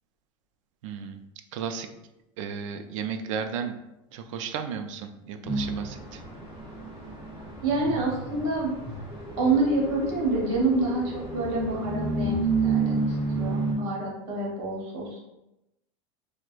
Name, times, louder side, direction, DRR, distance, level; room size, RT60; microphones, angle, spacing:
voice 1, 0.8-1.2 1.5-1.9 2.4-3.7 4.1-6.2, right 7 dB, 85° right, 7 dB, 0.4 m, -34 dB
sound 1, 5.4-13.7, right 3 dB, 5° right, 1.1 m, -30 dB
voice 2, 7.6-8.7 9.4-15.2, right 2 dB, 50° right, -3 dB, 1.0 m, -27 dB
4.6 x 2.1 x 2.4 m, 0.92 s
supercardioid pair, 180°, 16 cm